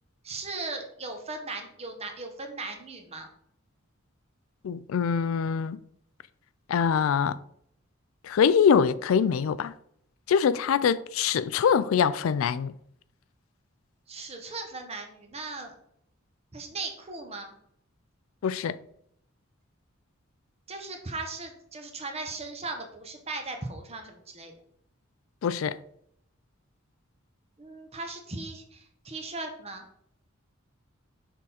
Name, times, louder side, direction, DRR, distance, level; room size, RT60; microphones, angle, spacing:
voice 1, 0.2-3.3 14.1-15.7 16.5-17.6 20.7-24.5 27.6-29.9, right 3 dB, 30° right, 1.0 m, -38 dB
voice 2, 4.6-5.8 6.7-7.4 8.2-9.7 10.3-12.7 18.4-18.8 25.4-25.8, left 7 dB, 80° left, 0.3 m, -24 dB
6.4 x 3.7 x 4.1 m
head